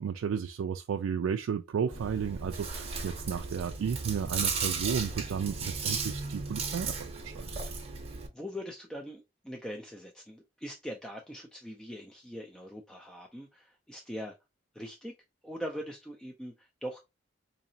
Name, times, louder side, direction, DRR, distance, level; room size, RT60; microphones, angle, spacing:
voice 1, 0.0-7.5, right 7 dB, 90° right, 0.3 m, -33 dB
Chewing mastication, 1.9-8.3, right 4 dB, 30° right, 0.8 m, -35 dB
voice 2, 8.3-14.4 14.7-15.1 15.4-17.0, equal, 5° left, 0.4 m, -42 dB
3.9 x 2.8 x 2.7 m
head